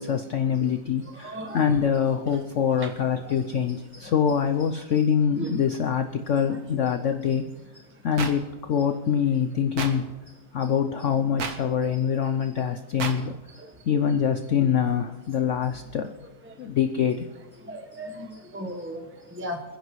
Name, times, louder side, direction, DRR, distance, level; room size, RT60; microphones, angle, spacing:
voice 1, 0.0-7.4 8.0-10.1 10.5-13.3 13.9-16.1 16.6-17.2, left 7 dB, 60° left, 7 dB, 0.8 m, -24 dB
voice 2, 1.0-1.8 2.3-2.4 2.8-3.6 4.0-4.1 5.3-5.6 6.5-7.1 12.2-12.3 13.2-13.8 16.4-16.8 17.6-19.6, right 1 dB, 10° right, 3 dB, 0.9 m, -38 dB
sound 1, 8.2-8.3 9.8-9.9 11.4-11.5 13.0-13.1, right 5 dB, 65° right, 1.6 m, -29 dB
29.5 x 10.0 x 3.1 m, 1.2 s
omnidirectional pair, 1.8 m